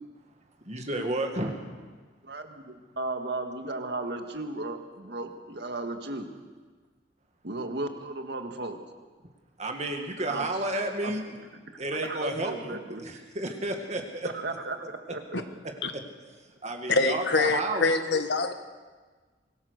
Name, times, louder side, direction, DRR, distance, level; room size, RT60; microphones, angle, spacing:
voice 1, 0.7-1.7 9.6-11.2 11.8-14.3 16.6-17.9, right 2 dB, 40° right, 3 dB, 1.9 m, -31 dB
voice 2, 2.2-6.3 7.4-8.8 10.2-10.5 11.0-11.1 11.5-13.0 14.2-15.4, right 2 dB, 65° right, 6 dB, 1.8 m, -35 dB
voice 3, 16.9-18.5, left 3 dB, 65° left, 8 dB, 1.5 m, -25 dB
24.0 x 17.5 x 6.7 m, 1.4 s
head